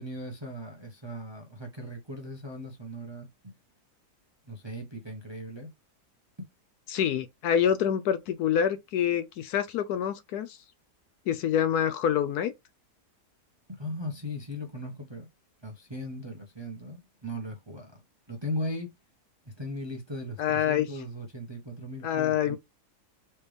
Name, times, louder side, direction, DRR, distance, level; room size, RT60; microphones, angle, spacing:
voice 1, 0.0-3.5 4.4-5.7 13.7-15.3 15.6-18.0 18.3-18.9 19.5-22.6, left 1 dB, 25° right, 0.7 m, -38 dB
voice 2, 6.9-10.6 11.3-12.5 20.4-20.9 22.0-22.6, left 9 dB, 75° left, 1.0 m, -26 dB
4.3 x 3.4 x 3.3 m
omnidirectional pair, 1.8 m